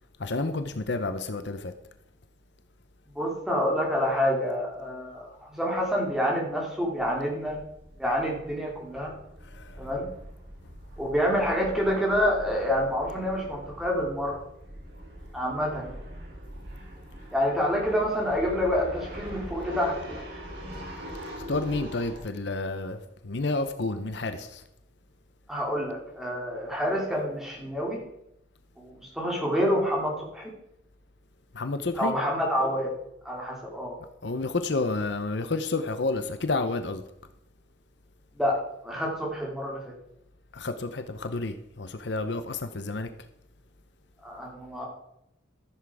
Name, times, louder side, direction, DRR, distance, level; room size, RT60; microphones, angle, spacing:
voice 1, 0.2-1.7 9.5-9.8 21.5-24.6 31.5-32.1 34.2-37.0 40.5-43.1, left 3 dB, 65° left, 9 dB, 0.8 m, -30 dB
voice 2, 3.1-7.6 8.0-9.1 9.8-10.1 11.0-14.4 15.3-16.0 17.3-20.2 25.5-28.0 28.8-30.5 32.0-32.9 33.2-34.0 38.4-38.6 38.8-39.9 44.2-44.9, equal, ahead, -2 dB, 2.7 m, -27 dB
sound 1, 5.8-5.9 6.1-6.2 6.5-22.2, equal, 60° right, 4.5 m, -43 dB
14.0 x 7.3 x 4.8 m, 0.82 s
head